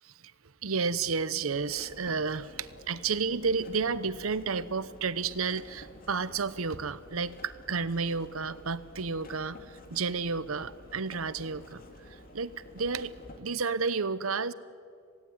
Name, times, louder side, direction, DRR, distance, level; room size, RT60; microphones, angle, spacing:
voice 1, 0.6-14.5, right 5 dB, 85° right, 15 dB, 0.9 m, -32 dB
sound 1, 1.5-13.4, left 1 dB, 45° left, 2.3 m, -51 dB
27.0 x 17.5 x 9.6 m, 2.3 s
head